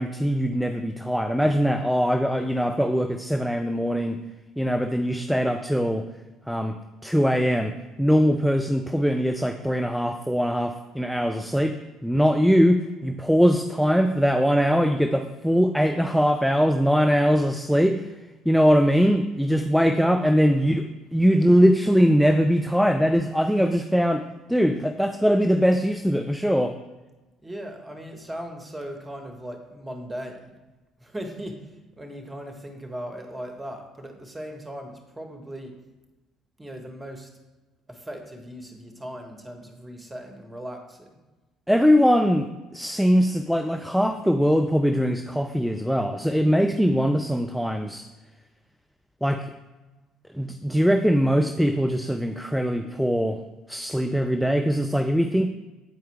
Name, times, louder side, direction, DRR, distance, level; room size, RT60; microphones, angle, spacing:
voice 1, 0.0-4.2 4.6-6.1 6.5-18.2 18.5-26.7 41.7-48.0 49.2-49.5 50.3-53.4 53.7-55.5, equal, ahead, 7 dB, 0.4 m, -22 dB
voice 2, 27.4-30.6 31.0-35.8 36.6-37.3 37.9-41.1, equal, 15° right, 3 dB, 1.3 m, -38 dB
8.3 x 4.5 x 3.5 m, 1.1 s
figure-of-eight pair, 55°, 0 cm